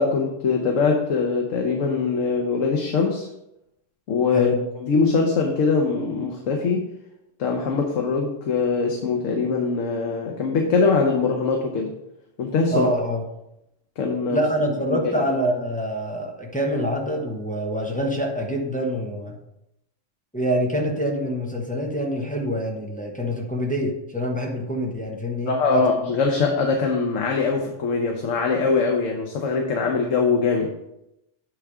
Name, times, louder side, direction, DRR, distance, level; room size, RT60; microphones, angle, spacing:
voice 1, 0.0-3.3 4.1-4.5 4.8-6.9 7.4-11.9 12.4-12.9 14.0-15.2 25.5-30.8, left 4 dB, 90° left, 2 dB, 1.2 m, -22 dB
voice 2, 12.7-13.2 14.3-19.4 20.3-25.8, equal, 5° left, 0 dB, 0.9 m, -25 dB
9.0 x 3.5 x 4.8 m, 0.84 s
omnidirectional pair, 1.3 m